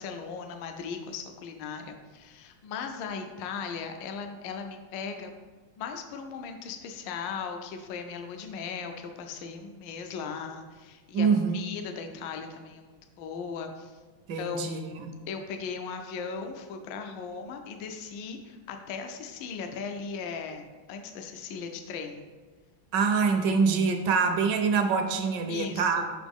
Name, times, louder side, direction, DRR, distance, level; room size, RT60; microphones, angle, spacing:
voice 1, 0.0-5.3 5.8-11.3 11.5-14.0 14.4-14.8 15.3-22.2 25.5-26.1, left 5 dB, 75° left, 5 dB, 1.2 m, -38 dB
voice 2, 11.1-11.6 14.3-15.2 22.9-26.1, right 5 dB, 75° right, 6 dB, 1.1 m, -25 dB
5.4 x 5.0 x 3.5 m, 1.4 s
omnidirectional pair, 2.1 m